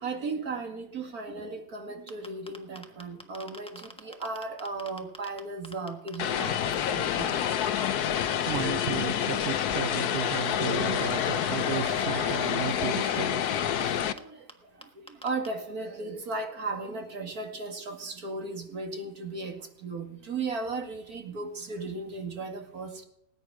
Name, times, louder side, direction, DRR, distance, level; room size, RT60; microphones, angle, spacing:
voice 1, 0.0-3.7 4.0-6.6 6.9-7.3 11.7-12.4 13.6-13.8 15.2-23.0, right 3 dB, 75° right, 2.6 m, -36 dB
sound 1, 2.1-5.4 5.6-13.5 13.8-14.2 14.5-14.6 14.8-15.5, left 1 dB, 5° left, 1.2 m, -46 dB
Vehicle, 6.2-14.1, left 9 dB, 90° left, 1.3 m, -28 dB
voice 2, 8.2-13.6, right 8 dB, 55° right, 0.8 m, -34 dB
19.5 x 9.5 x 4.9 m
omnidirectional pair, 1.6 m